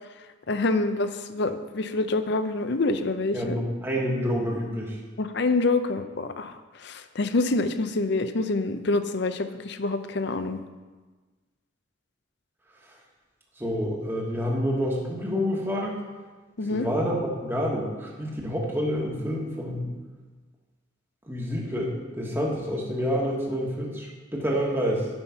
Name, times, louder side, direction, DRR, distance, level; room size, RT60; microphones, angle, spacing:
voice 1, 0.5-3.6 5.2-10.6 16.6-16.9, left 2 dB, 55° left, 10 dB, 0.6 m, -26 dB
voice 2, 3.3-5.0 13.6-16.0 16.7-19.9 21.3-25.1, equal, 10° right, -2 dB, 1.4 m, -28 dB
9.7 x 5.8 x 5.7 m, 1.3 s
head